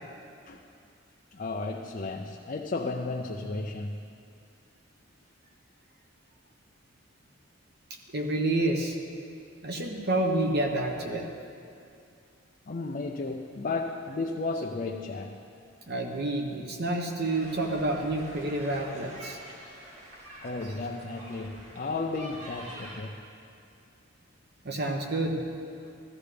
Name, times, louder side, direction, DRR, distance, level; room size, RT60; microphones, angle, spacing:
voice 1, 1.3-4.0 12.7-15.4 20.4-23.1, left 3 dB, 40° left, 1 dB, 0.5 m, -33 dB
voice 2, 8.1-9.0 9.6-11.3 15.9-19.4 24.6-25.4, right 2 dB, 50° right, 2 dB, 1.1 m, -29 dB
sound 1, 17.2-23.0, right 1 dB, 90° right, 2.3 m, -46 dB
15.0 x 13.5 x 3.4 m, 2.5 s
head